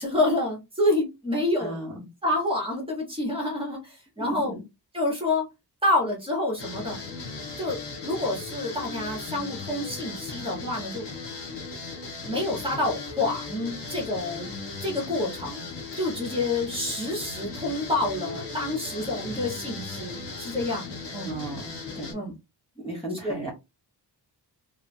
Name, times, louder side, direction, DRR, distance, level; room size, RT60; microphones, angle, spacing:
voice 1, 0.0-1.7 2.2-4.5 4.9-5.5 5.8-7.0 7.6-11.1 12.2-14.5 14.8-15.6 16.0-21.3 22.1-22.3 23.2-23.4, left 2 dB, 15° right, -1 dB, 1.6 m, -28 dB
voice 2, 1.6-2.0 4.2-4.6 21.2-22.2 22.8-23.5, right 1 dB, 15° left, -4 dB, 1.3 m, -35 dB
sound 1, 6.6-22.1, left 4 dB, 75° left, 1.5 m, -37 dB
3.5 x 2.9 x 2.2 m, 0.23 s
wide cardioid pair, 130°, 41 cm